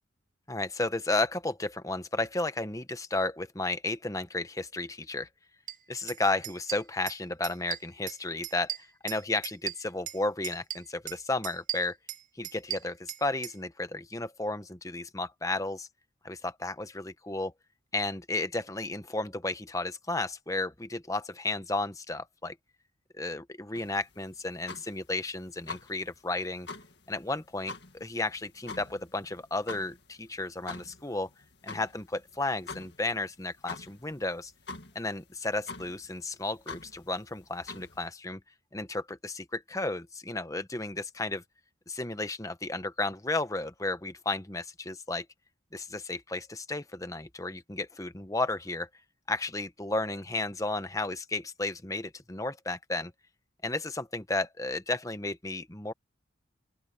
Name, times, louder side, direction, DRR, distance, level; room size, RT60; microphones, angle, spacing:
voice 1, 0.5-5.3 5.9-8.7 9.0-12.0 12.4-15.9 16.2-17.5 17.9-22.6 23.1-26.7 27.1-31.3 31.6-34.5 34.9-38.4 38.7-41.4 41.9-45.2 45.7-48.9 49.3-53.1 53.6-55.9, left 2 dB, 15° left, 1.1 m, -33 dB
sound 1, 5.7-5.8 6.1-6.2 6.4-7.2 7.4-8.2 8.4-10.2 10.4-11.2 11.4-13.6, right 12 dB, 40° right, 1.7 m, -37 dB
sound 2, 23.7-38.1, left 3 dB, 60° left, 2.1 m, -46 dB
open air
head